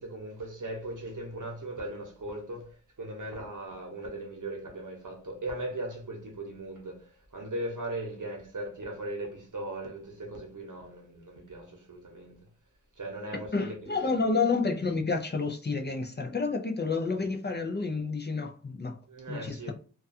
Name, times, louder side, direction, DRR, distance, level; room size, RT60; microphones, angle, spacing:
voice 1, 0.0-12.4 13.0-14.3 19.1-19.7, right 1 dB, 80° right, 0.8 m, -38 dB
voice 2, 13.5-19.0 19.3-19.7, left 4 dB, 35° left, 0.4 m, -29 dB
2.3 x 2.3 x 2.6 m
wide cardioid pair, 45°, 31 cm